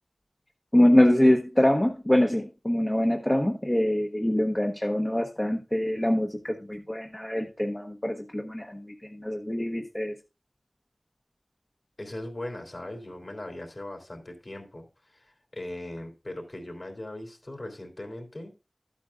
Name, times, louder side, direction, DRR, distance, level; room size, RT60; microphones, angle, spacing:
voice 1, 0.7-10.2, left 1 dB, 20° left, 0.9 m, -24 dB
voice 2, 12.0-18.5, left 1 dB, 55° left, 3.0 m, -39 dB
13.0 x 8.6 x 2.5 m
wide cardioid pair, 50°, 0 cm